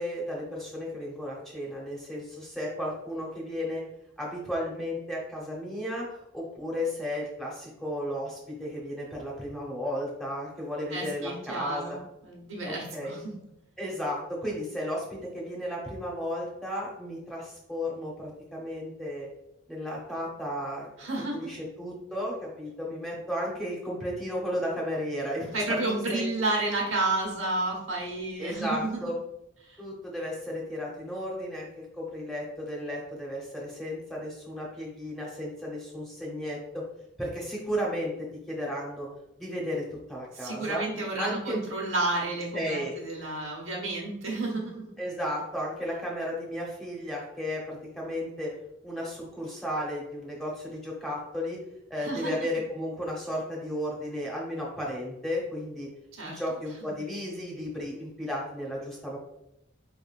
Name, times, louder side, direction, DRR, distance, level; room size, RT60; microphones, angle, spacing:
voice 1, 0.0-3.8 4.2-6.1 6.3-12.0 12.9-13.1 13.8-19.3 19.7-20.9 21.3-25.8 26.1-26.2 28.4-29.2 29.8-36.8 37.2-38.1 38.5-39.1 39.4-39.8 40.1-40.8 41.2-41.6 42.5-42.9 45.0-48.5 48.8-51.6 51.9-55.9 56.2-59.2, equal, ahead, -4 dB, 0.9 m, -34 dB
voice 2, 10.9-13.4 21.0-21.5 25.5-29.1 29.6-29.8 40.3-44.9 51.9-52.3 56.1-56.4, right 2 dB, 80° right, -1 dB, 1.2 m, -31 dB
4.7 x 3.4 x 2.5 m, 0.84 s
head